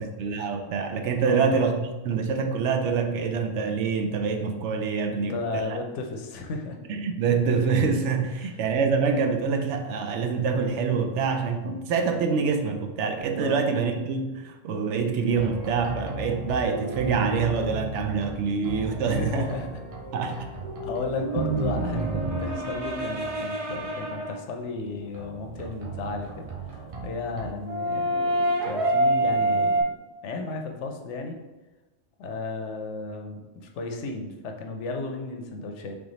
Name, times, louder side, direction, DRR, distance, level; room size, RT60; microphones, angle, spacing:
voice 1, 0.0-5.6 6.9-19.5 20.1-20.5, right 5 dB, 80° right, 5 dB, 0.9 m, -26 dB
voice 2, 5.1-6.8 8.4-8.5 13.4-13.6 19.1-19.7 20.2-20.4 20.8-28.3 28.6-29.9 30.2-31.4 32.2-36.0, left 3 dB, 85° left, 3 dB, 1.0 m, -34 dB
sound 1, 15.3-24.5 25.1-29.8, right 2 dB, 45° right, 0.5 m, -29 dB
3.5 x 3.5 x 3.9 m, 1.1 s
omnidirectional pair, 1.2 m